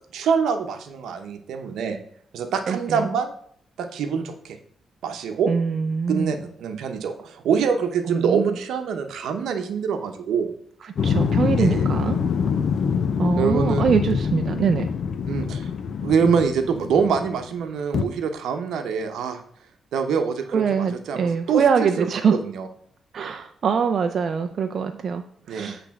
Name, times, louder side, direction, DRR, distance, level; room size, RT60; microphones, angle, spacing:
voice 1, 0.1-2.0 2.3-3.3 3.8-4.6 5.0-5.5 6.1-10.5 11.5-11.8 13.4-13.9 15.3-15.7 16.0-19.4 19.9-22.7 25.5-25.7, right 6 dB, 85° right, 7 dB, 0.8 m, -25 dB
voice 2, 2.7-3.1 5.5-6.3 8.1-8.6 10.8-12.2 13.2-14.9 20.5-22.4 23.1-25.8, right 6 dB, 55° right, 7 dB, 0.4 m, -23 dB
sound 1, 10.9-17.4 17.9-18.0, left 6 dB, 60° left, 0.6 m, -24 dB
8.4 x 3.4 x 5.8 m, 0.63 s
cardioid pair, 115°, 0 cm